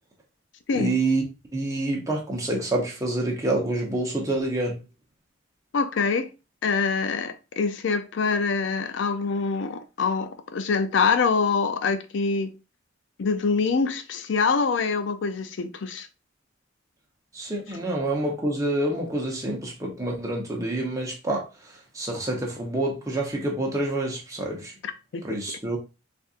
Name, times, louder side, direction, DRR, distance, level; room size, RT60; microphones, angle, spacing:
voice 1, 0.7-1.2 1.5-4.8 17.3-21.5 21.9-24.7 25.2-25.8, right 2 dB, 15° right, 0.8 m, -27 dB
voice 2, 5.7-6.3 6.6-12.5 13.2-16.1 24.8-25.4, left 5 dB, 70° left, 0.4 m, -25 dB
4.2 x 2.5 x 2.4 m
head